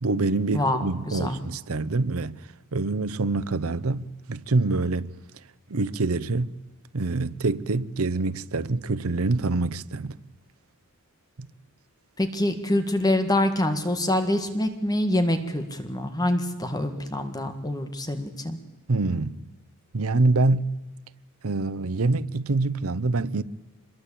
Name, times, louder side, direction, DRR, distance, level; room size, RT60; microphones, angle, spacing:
voice 1, 0.0-2.4 2.7-5.1 5.7-6.5 6.9-10.2 11.4-11.5 18.9-19.4 19.9-20.7 21.4-23.4, right 3 dB, 75° right, 0.8 m, -25 dB
voice 2, 12.2-18.6, left 1 dB, 20° left, 1.8 m, -25 dB
26.0 x 22.0 x 8.6 m
head